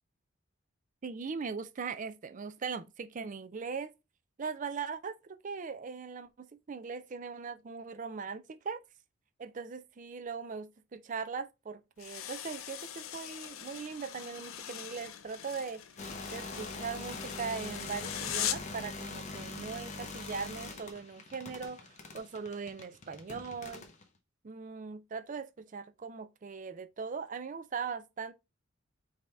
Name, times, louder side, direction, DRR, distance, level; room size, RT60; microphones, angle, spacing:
voice 1, 1.0-3.9 4.4-8.8 9.4-15.8 16.3-23.9 24.4-28.3, right 5 dB, 40° right, 0.4 m, -40 dB
sound 1, 12.0-18.8, left 10 dB, 80° left, 0.5 m, -41 dB
sound 2, 16.0-24.0, left 3 dB, 35° left, 0.7 m, -43 dB
5.1 x 2.8 x 3.4 m
head